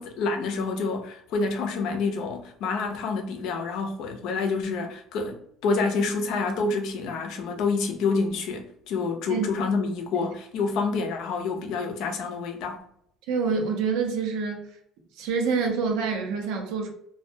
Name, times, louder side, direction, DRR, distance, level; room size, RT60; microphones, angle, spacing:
voice 1, 0.0-12.8, left 4 dB, 75° left, 0.5 m, -28 dB
voice 2, 13.3-14.7 15.2-16.9, right 5 dB, 90° right, 0.7 m, -27 dB
2.2 x 2.1 x 2.7 m
cardioid pair, 120°, 0 cm